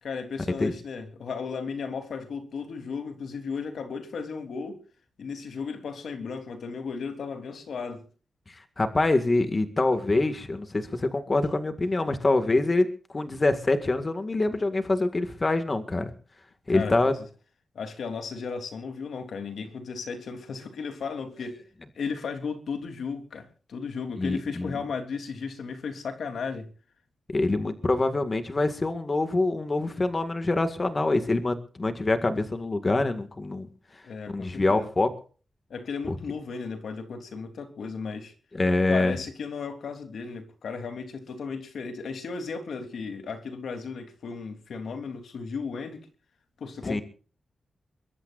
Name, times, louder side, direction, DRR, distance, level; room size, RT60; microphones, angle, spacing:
voice 1, 0.0-4.8 5.2-8.0 16.7-16.9 17.7-21.6 21.9-26.7 34.0-34.9 35.7-38.3 38.9-46.1 46.6-47.0, left 5 dB, 75° left, 3.3 m, -35 dB
voice 2, 8.5-12.9 13.1-16.1 16.7-17.1 24.2-24.7 27.3-33.7 34.3-35.1 36.1-36.2 38.5-39.1 46.8-47.0, left 2 dB, 25° left, 2.0 m, -25 dB
23.0 x 22.5 x 2.6 m
wide cardioid pair, 160°, 0 cm